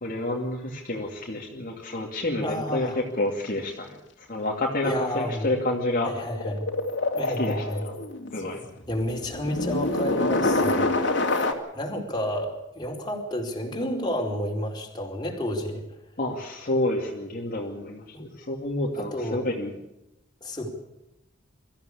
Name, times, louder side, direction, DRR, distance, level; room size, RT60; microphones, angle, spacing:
voice 1, 0.0-4.0 4.3-6.1 7.4-7.9 8.3-8.6 16.2-19.7, left 1 dB, 45° left, -1 dB, 2.6 m, -29 dB
voice 2, 2.4-3.0 4.8-5.5 6.0-6.6 7.1-7.8 8.9-11.3 11.7-15.8 18.1-18.2 18.9-19.4 20.4-20.7, equal, 20° left, 0 dB, 4.5 m, -30 dB
sound 1, 4.7-4.8 5.1-11.5, left 2 dB, 65° left, 3.1 m, -26 dB
23.5 x 14.5 x 8.5 m, 0.91 s
head